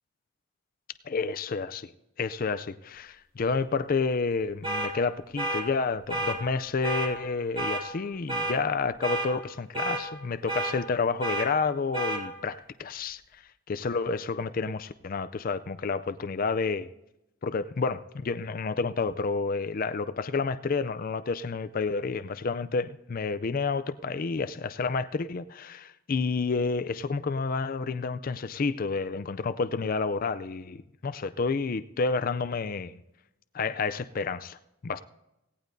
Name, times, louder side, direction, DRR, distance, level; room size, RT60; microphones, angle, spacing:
voice 1, 1.0-1.9 2.2-13.2 13.7-16.9 17.4-33.0 33.5-34.6 34.8-35.0, left 4 dB, 40° left, 0.4 m, -30 dB
sound 1, 4.6-4.9 5.4-5.6 6.1-6.4 6.8-7.1 7.6-7.8 8.3-8.6 9.0-9.3 9.7-10.0 10.5-10.7 11.2-11.5 11.9-12.2, right 2 dB, 25° right, 2.1 m, -30 dB
17.0 x 17.0 x 2.7 m
head